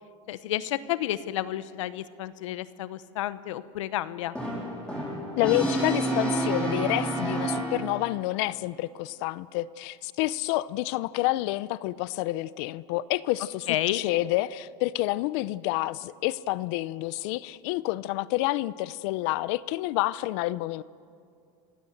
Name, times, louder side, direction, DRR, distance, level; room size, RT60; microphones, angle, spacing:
voice 1, 0.3-4.3 13.7-14.0, left 13 dB, 90° left, 15 dB, 0.9 m, -31 dB
Brass instrument, 4.3-8.2, right 2 dB, 5° left, 7.5 m, -29 dB
voice 2, 5.4-13.7 13.9-20.8, left 17 dB, 65° left, 19 dB, 0.6 m, -28 dB
27.0 x 16.0 x 7.9 m, 2.4 s
supercardioid pair, 125°, 16 cm